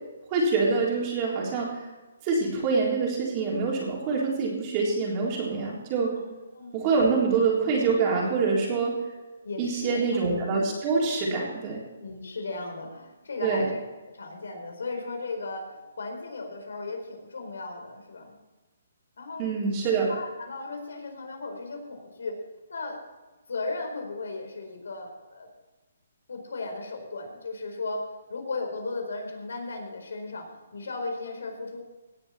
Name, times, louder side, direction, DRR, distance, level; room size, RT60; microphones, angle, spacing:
voice 1, 0.3-1.7 2.2-6.1 6.7-9.0 9.6-11.8 13.4-13.7 19.4-20.1, right 4 dB, 20° right, -3 dB, 3.7 m, -25 dB
voice 2, 6.2-6.9 9.4-10.0 12.0-13.8 14.2-18.4 19.2-19.4 19.8-22.4 22.7-23.0 23.5-25.5 26.3-28.0 28.3-31.8, left 3 dB, 85° left, 4 dB, 4.5 m, -36 dB
17.5 x 9.7 x 4.4 m, 1.2 s
hypercardioid pair, 170°, 0 cm